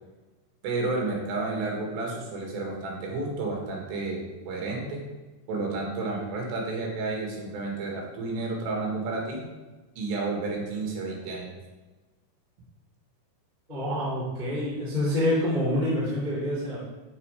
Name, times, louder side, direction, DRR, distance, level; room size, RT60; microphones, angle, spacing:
voice 1, 0.6-5.0 5.5-9.4 10.0-11.6, right 3 dB, 80° right, 0 dB, 3.9 m, -31 dB
voice 2, 13.7-16.8, left 1 dB, 10° right, -9 dB, 2.6 m, -27 dB
12.5 x 4.6 x 5.1 m, 1.2 s
omnidirectional pair, 4.9 m